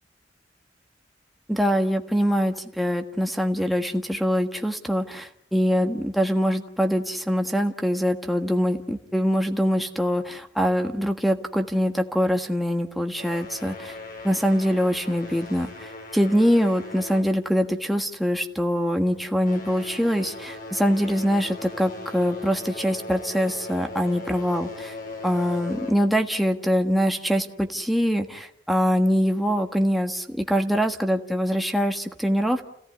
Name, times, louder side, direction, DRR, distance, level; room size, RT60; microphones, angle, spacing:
voice 1, 1.5-13.9 14.2-24.9 25.2-32.7, equal, ahead, 4 dB, 1.5 m, -24 dB
sound 1, 13.1-18.0 18.3-18.6 19.2-26.3, left 3 dB, 50° left, 5.3 m, -39 dB
30.0 x 17.0 x 9.6 m, 0.77 s
head